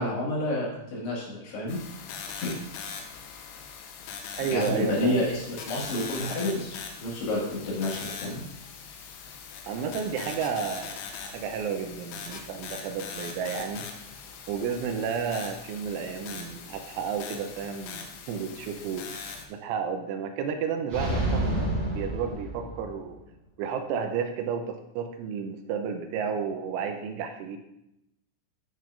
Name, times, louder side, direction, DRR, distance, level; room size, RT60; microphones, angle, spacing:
voice 1, 0.0-1.8 2.4-2.6 4.5-8.4, left 1 dB, 65° left, -4 dB, 3.7 m, -29 dB
sound 1, 1.7-19.5, left 6 dB, 85° left, 3.2 m, -41 dB
voice 2, 4.4-5.3 9.7-13.9 14.5-21.6 21.9-23.2 23.6-27.6, right 6 dB, 85° right, 5 dB, 3.1 m, -32 dB
sound 2, 20.9-23.1, right 1 dB, 35° right, 4.2 m, -29 dB
12.5 x 6.0 x 2.5 m, 0.84 s
omnidirectional pair, 5.6 m